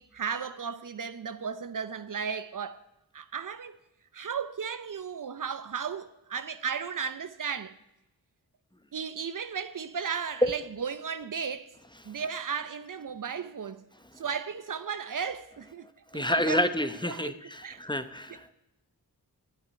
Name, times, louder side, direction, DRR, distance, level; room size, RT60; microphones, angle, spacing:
voice 1, 0.0-2.8 3.1-3.8 4.1-7.8 8.9-11.7 12.0-13.9 14.2-16.6 17.0-17.4 17.6-17.8 18.3-18.5, right 6 dB, 50° right, 0.8 m, -35 dB
voice 2, 16.1-18.5, left 1 dB, 10° left, 1.0 m, -28 dB
11.0 x 7.7 x 9.7 m
cardioid pair, 55°, 39 cm